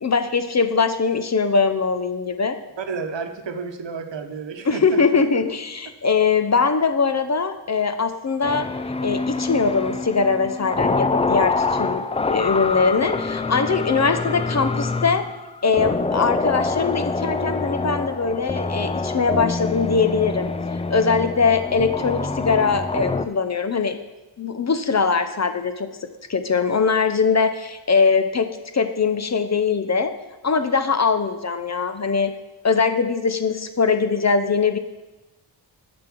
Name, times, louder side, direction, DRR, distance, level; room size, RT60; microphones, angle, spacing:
voice 1, 0.0-2.6 4.7-8.7 9.0-15.2 15.6-20.5 20.9-24.0 24.4-25.9 26.3-28.5 28.7-30.1 30.4-32.3 32.6-34.8, left 5 dB, 35° left, 8 dB, 0.7 m, -21 dB
voice 2, 2.8-5.2, right 5 dB, 70° right, 7 dB, 1.0 m, -31 dB
sound 1, 8.4-23.3, left 3 dB, 15° left, 0.3 m, -26 dB
7.1 x 7.0 x 6.1 m, 1.1 s
wide cardioid pair, 85°, 46 cm